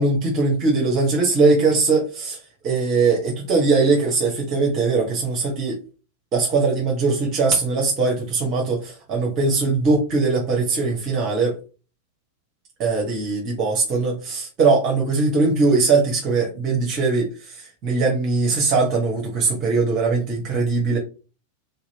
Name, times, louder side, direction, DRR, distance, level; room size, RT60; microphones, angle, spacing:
voice 1, 0.0-2.4 2.6-5.8 6.3-11.6 12.8-21.0, right 3 dB, 35° right, -1 dB, 0.9 m, -20 dB
3.4 x 2.8 x 2.8 m, 0.34 s
figure-of-eight pair, 90°, 0 cm